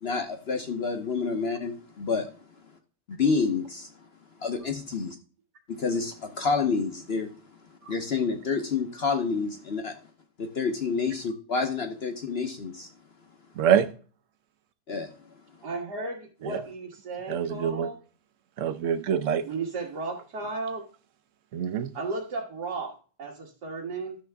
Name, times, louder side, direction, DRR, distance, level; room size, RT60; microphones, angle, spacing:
voice 1, 0.0-2.3 3.2-3.9 4.4-5.2 5.7-7.4 7.9-10.0 10.4-12.9 14.9-15.1, left 4 dB, 45° left, 6 dB, 0.9 m, -28 dB
voice 2, 13.6-13.9 16.4-16.6 17.3-17.9 18.6-19.4 21.5-21.9, right 8 dB, 60° right, 13 dB, 0.9 m, -25 dB
voice 3, 15.6-18.0 19.4-20.8 21.9-24.2, right 3 dB, 80° right, -3 dB, 2.1 m, -34 dB
11.5 x 6.8 x 3.5 m, 0.39 s
omnidirectional pair, 1.7 m